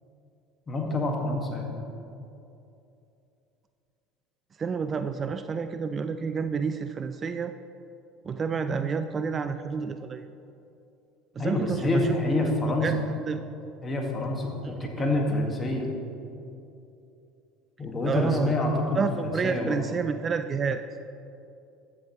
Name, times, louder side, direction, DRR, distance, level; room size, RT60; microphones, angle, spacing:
voice 1, 0.7-1.8 8.7-8.8 11.4-13.0 13.8-15.9 17.8-19.1 19.4-19.8, left 2 dB, 30° left, 1 dB, 1.9 m, -27 dB
voice 2, 4.6-7.5 8.2-10.2 11.4-12.5 12.8-13.0 13.3-13.4 14.6-15.5 18.1-18.6 18.9-21.0, right 5 dB, 35° right, 10 dB, 0.4 m, -30 dB
14.0 x 7.4 x 3.2 m, 2.7 s
hypercardioid pair, 70°, 0 cm